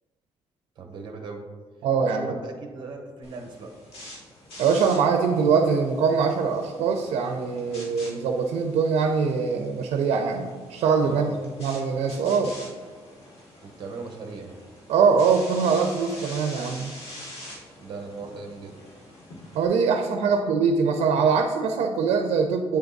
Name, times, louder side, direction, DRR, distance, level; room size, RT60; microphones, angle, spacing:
voice 1, 0.8-1.5 2.1-3.8 11.0-11.3 13.6-14.5 17.8-18.8 20.2-20.3, right 3 dB, 45° right, 3 dB, 0.9 m, -38 dB
voice 2, 1.8-2.3 4.6-11.3 11.6-12.6 14.9-16.9 19.5-22.8, right 5 dB, 85° right, 5 dB, 0.5 m, -23 dB
sound 1, 3.2-19.7, left 1 dB, 65° left, 1.5 m, -45 dB
8.6 x 3.5 x 3.9 m, 1.5 s
cardioid pair, 155°, 11 cm